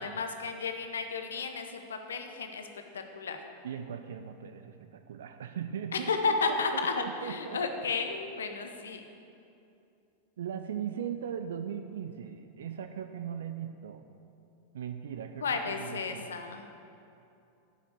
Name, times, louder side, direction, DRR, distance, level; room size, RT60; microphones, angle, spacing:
voice 1, 0.0-2.7 2.9-3.4 5.9-9.0 15.4-16.7, left 4 dB, 65° left, 6 dB, 0.9 m, -33 dB
voice 2, 3.6-7.6 10.4-14.0 14.7-16.3, right 8 dB, 60° right, 9 dB, 0.4 m, -39 dB
9.8 x 6.0 x 7.5 m, 2.7 s
figure-of-eight pair, 90°, 0 cm